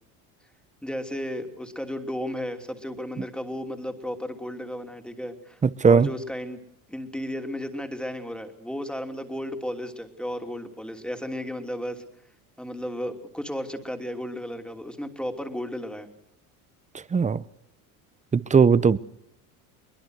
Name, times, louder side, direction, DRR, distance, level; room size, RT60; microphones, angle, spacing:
voice 1, 0.8-6.6 6.9-12.0 12.6-16.1, equal, ahead, 2.9 m, -34 dB
voice 2, 5.6-6.1 17.1-17.4 18.3-19.0, right 5 dB, 15° right, 0.8 m, -18 dB
23.0 x 21.0 x 6.5 m
supercardioid pair, 95°, 43 cm